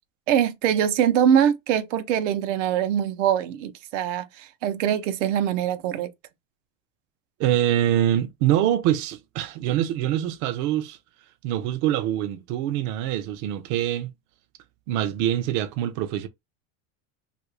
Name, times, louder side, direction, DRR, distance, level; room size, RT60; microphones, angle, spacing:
voice 1, 0.3-6.1, right 9 dB, 85° right, 0.8 m, -23 dB
voice 2, 7.4-11.0 11.4-14.1 14.9-16.3, right 12 dB, 50° right, 0.5 m, -24 dB
2.7 x 2.5 x 3.0 m
supercardioid pair, 160°, 36 cm